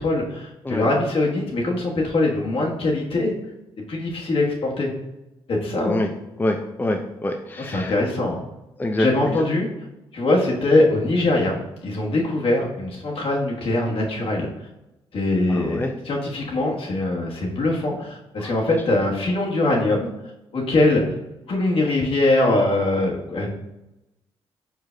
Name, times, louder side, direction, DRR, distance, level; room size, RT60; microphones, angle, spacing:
voice 1, 0.0-3.3 3.9-4.9 5.5-6.0 7.7-8.4 9.0-9.7 10.1-14.5 15.1-20.1 20.5-21.1 21.5-23.5, left 2 dB, 55° left, -2 dB, 1.2 m, -22 dB
voice 2, 6.4-7.9 8.8-9.4 15.5-15.9 18.4-18.5, left 1 dB, 15° left, 4 dB, 0.5 m, -26 dB
4.7 x 4.6 x 2.2 m, 0.93 s
supercardioid pair, 55°, 11 cm